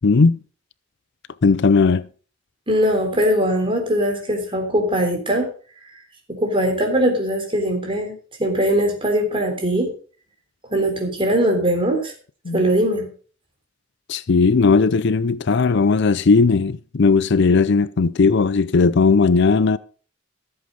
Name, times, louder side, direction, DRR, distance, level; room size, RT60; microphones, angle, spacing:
voice 1, 0.0-0.4 1.4-2.1 12.5-12.6 14.1-19.8, left 4 dB, 60° left, 0.5 m, -17 dB
voice 2, 2.7-5.5 6.3-8.1 8.4-9.9 10.7-12.1 12.5-13.1, equal, 25° right, 3.6 m, -20 dB
14.5 x 7.9 x 5.2 m
head